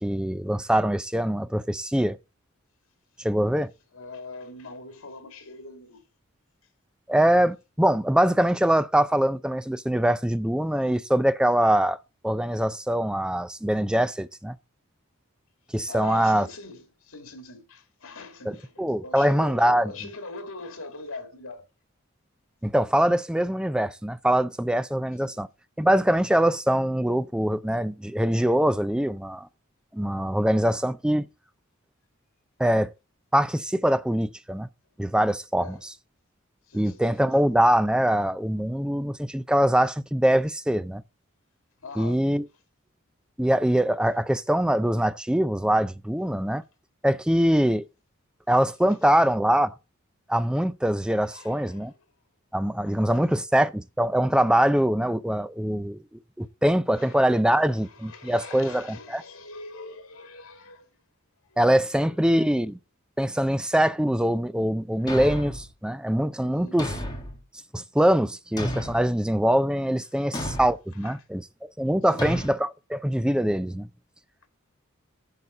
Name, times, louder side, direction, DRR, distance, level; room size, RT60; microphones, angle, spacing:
voice 1, 0.0-2.2 3.2-3.7 7.1-12.0 12.2-14.6 15.7-16.5 18.5-19.9 22.6-25.5 25.8-29.5 29.9-31.3 32.6-32.9 33.3-34.7 35.0-35.8 36.7-41.0 42.0-42.4 43.4-46.6 47.0-47.8 48.5-49.7 50.3-51.9 52.5-56.0 56.4-59.2 61.6-62.8 63.2-66.9 67.7-73.9, right 1 dB, 5° right, 0.4 m, -23 dB
voice 2, 3.9-6.0 15.9-21.6 25.2-25.4 35.6-35.8 36.7-37.0 41.8-42.3 51.3-52.0 52.8-53.4 56.9-61.0 61.4-61.6 62.1-62.7 66.4-66.8 70.1-70.3 70.9-71.2 71.8-72.3, left 3 dB, 85° left, 2.2 m, -42 dB
Thump thud, 65.1-65.7 66.8-67.4 68.6-69.1 70.3-70.8 72.2-72.5, equal, 20° left, 1.8 m, -31 dB
11.0 x 4.0 x 7.1 m
head